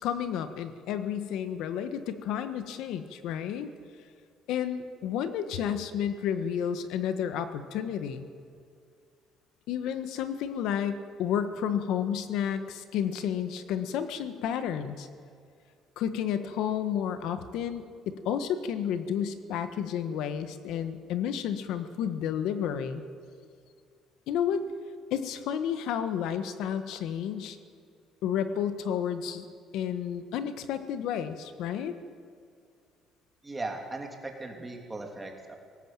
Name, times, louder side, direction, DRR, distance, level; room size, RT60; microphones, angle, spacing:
voice 1, 0.0-3.7 4.5-8.3 9.7-15.1 16.0-23.0 24.3-24.6 25.1-27.6 28.2-29.5 29.7-31.9, left 8 dB, 80° left, 10 dB, 1.4 m, -31 dB
voice 2, 33.4-35.5, right 2 dB, 15° right, 2 dB, 2.9 m, -38 dB
20.0 x 18.0 x 9.0 m, 2.3 s
cardioid pair, 150°, 0 cm